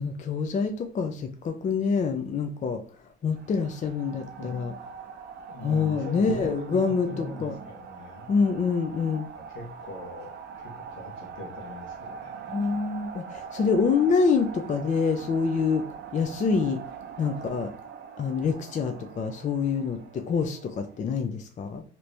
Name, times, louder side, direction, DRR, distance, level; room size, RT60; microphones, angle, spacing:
voice 1, 0.0-2.8 3.2-4.7 5.6-7.5 8.3-9.3 12.5-15.8 16.1-16.8 17.2-17.7 18.2-21.8, left 5 dB, 40° left, 7 dB, 0.4 m, -26 dB
sound 1, 3.3-21.0, right 6 dB, 60° right, 0.5 m, -42 dB
voice 2, 5.5-8.3 9.3-10.3 10.6-12.6, left 2 dB, 80° left, 1 dB, 1.1 m, -40 dB
2.9 x 2.6 x 3.3 m, 0.42 s
cardioid pair, 90°, 20 cm